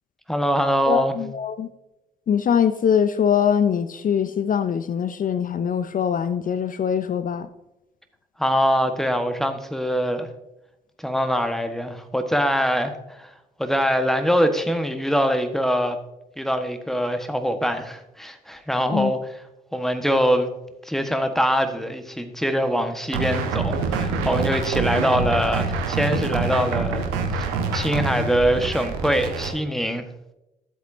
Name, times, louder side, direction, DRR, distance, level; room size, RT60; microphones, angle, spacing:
voice 1, 0.3-1.2 8.4-10.3 11.0-13.3 13.6-16.0 16.4-19.2 19.7-20.5 20.8-27.1 27.4-30.1, equal, ahead, 7 dB, 1.4 m, -23 dB
voice 2, 0.9-1.7 2.3-7.5 18.9-19.1, left 8 dB, 40° left, 13 dB, 0.6 m, -22 dB
sound 1, 23.1-29.5, right 4 dB, 75° right, 1.3 m, -26 dB
13.0 x 8.1 x 2.7 m, 0.92 s
hypercardioid pair, 50°, 21 cm